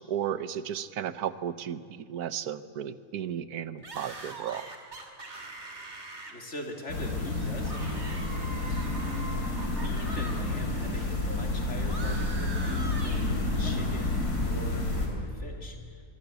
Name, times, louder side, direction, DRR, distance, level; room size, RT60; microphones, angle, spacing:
voice 1, 0.0-4.6, right 9 dB, 80° right, 14 dB, 1.4 m, -34 dB
sound 1, 3.8-10.4 10.7-13.9, right 2 dB, 45° right, 2.9 m, -43 dB
voice 2, 6.3-8.9 9.3-15.8, left 1 dB, 50° left, 3 dB, 3.3 m, -43 dB
sound 2, 6.9-15.1, left 2 dB, 85° left, 4.2 m, -30 dB
25.5 x 23.5 x 8.2 m, 2.3 s
omnidirectional pair, 1.6 m